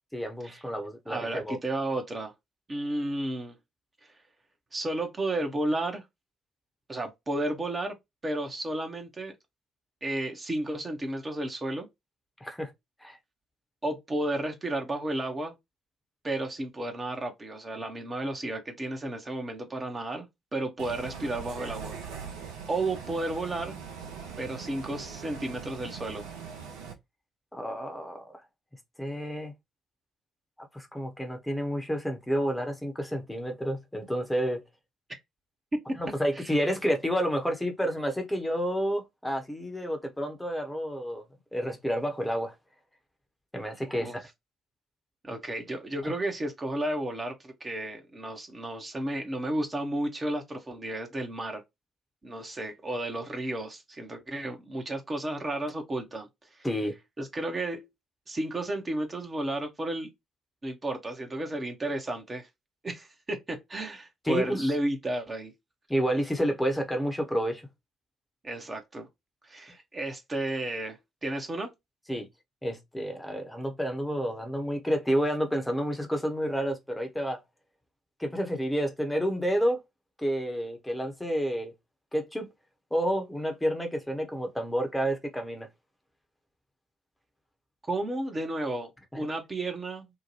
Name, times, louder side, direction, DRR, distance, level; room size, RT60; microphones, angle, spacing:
voice 1, 0.1-1.6 12.4-12.7 13.0-13.2 27.5-28.3 29.0-29.5 30.7-34.6 36.0-41.2 41.5-42.5 43.5-44.3 56.6-57.0 64.2-64.7 65.9-67.6 72.1-72.3 72.6-77.4 78.2-79.8 80.2-81.7 82.1-82.5 82.9-85.7, equal, 10° left, 0.8 m, -30 dB
voice 2, 1.1-2.3 2.7-3.6 4.7-6.0 6.9-7.9 8.2-9.3 10.0-11.9 13.8-15.6 16.2-22.0 22.7-23.8 24.4-26.2 35.9-36.0 36.4-36.5 43.8-44.2 45.2-51.6 52.2-56.7 57.2-57.9 58.3-60.1 60.6-62.5 62.8-65.5 68.4-69.1 69.4-71.7 87.9-90.1, right 1 dB, 25° right, 0.8 m, -33 dB
Bus, 20.8-26.9, right 6 dB, 70° right, 0.6 m, -41 dB
2.8 x 2.2 x 3.0 m
figure-of-eight pair, 45°, 0 cm